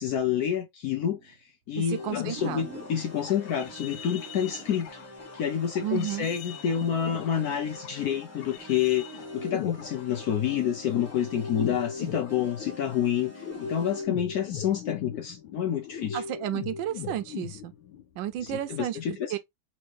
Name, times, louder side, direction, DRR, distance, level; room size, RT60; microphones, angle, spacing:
voice 1, 0.0-1.3 1.7-5.0 5.3-16.2 18.4-19.4, left 9 dB, 70° left, 0.9 m, -28 dB
sound 1, 1.2-1.5 1.9-2.0 2.3-3.4 4.0-4.7 5.0-5.1 5.6-5.7 5.9-7.8 8.2-8.3, right 6 dB, 55° right, 0.8 m, -45 dB
voice 2, 1.8-2.6 5.8-6.3 16.1-17.7 18.2-19.0 19.3-19.4, right 12 dB, 75° right, 1.3 m, -32 dB
sound 2, 1.9-18.0 18.4-18.7, left 8 dB, 85° left, 1.4 m, -39 dB
sound 3, 1.9-14.0, right 3 dB, 15° right, 0.6 m, -47 dB
4.4 x 3.1 x 3.1 m
omnidirectional pair, 2.1 m